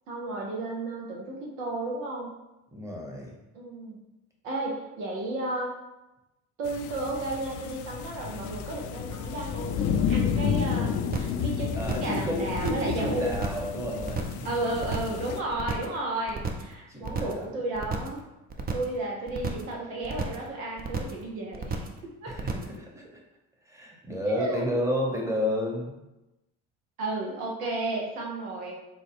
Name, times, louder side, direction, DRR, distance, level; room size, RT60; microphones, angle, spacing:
voice 1, 0.1-2.3 3.5-4.0 4.4-5.7 6.6-13.4 14.4-18.2 18.7-22.3 24.3-24.6 27.0-28.7, right 2 dB, 85° right, -1 dB, 0.8 m, -33 dB
voice 2, 2.7-3.3 11.7-14.3 16.9-17.5 22.3-23.1 23.7-25.9, equal, 5° right, -1 dB, 0.9 m, -31 dB
sound 1, 6.7-15.4, left 7 dB, 50° left, 0.4 m, -31 dB
sound 2, 11.1-11.4 11.7-12.2 12.5-12.9 13.2-13.7 14.0-14.4 14.7-15.2 15.5-16.0 16.3-16.7 17.0-17.4 17.7-18.2 18.5-19.0 19.3-19.7 20.0-20.5 20.8-21.2 21.5-22.0 22.3-22.8, right 5 dB, 25° right, 0.5 m, -33 dB
3.9 x 2.3 x 3.4 m, 0.98 s
hypercardioid pair, 65°, 40 cm